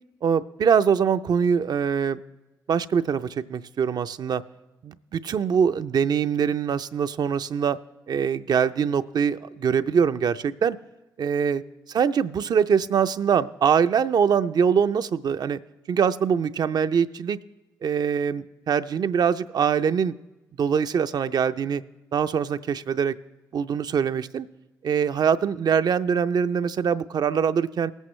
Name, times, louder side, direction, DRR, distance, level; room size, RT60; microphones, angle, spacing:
voice 1, 0.2-2.2 2.7-4.4 4.8-7.8 8.1-10.8 11.2-11.6 11.9-15.6 15.9-17.4 17.8-20.1 20.6-21.8 22.1-23.1 23.5-24.5 24.8-27.9, right 7 dB, 60° right, 11 dB, 0.5 m, -23 dB
20.0 x 8.2 x 3.2 m, 1.1 s
hypercardioid pair, 45°, 8 cm